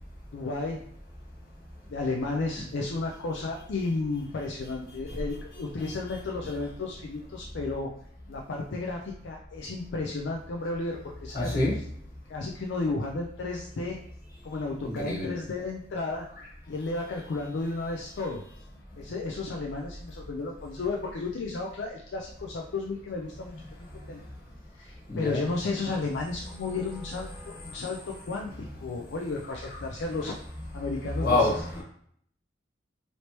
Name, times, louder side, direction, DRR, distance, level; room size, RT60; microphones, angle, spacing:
voice 1, 0.3-0.8 1.9-7.9 8.3-11.6 12.3-14.0 14.4-16.3 16.7-18.4 19.0-23.5 24.1-24.2 24.7-28.0 28.3-30.4 30.7-31.6, left 3 dB, 70° left, 0 dB, 0.4 m, -33 dB
voice 2, 11.3-11.7 14.8-15.4 25.1-25.4 29.7-29.8 31.2-31.8, left 2 dB, 50° left, -5 dB, 1.2 m, -26 dB
3.1 x 2.8 x 3.0 m, 0.65 s
head